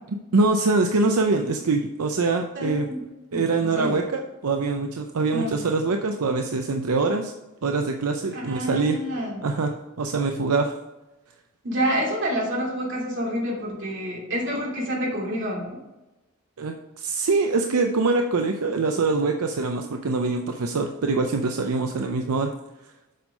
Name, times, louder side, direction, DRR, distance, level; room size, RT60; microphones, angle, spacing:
voice 1, 0.3-2.9 3.3-7.3 7.6-9.0 9.4-10.8 16.6-22.5, right 3 dB, 80° right, 4 dB, 0.6 m, -24 dB
voice 2, 2.5-3.0 3.3-4.0 5.3-5.5 8.3-9.5 11.6-15.8, equal, 55° right, -3 dB, 3.0 m, -28 dB
7.7 x 5.4 x 5.2 m, 1.0 s
head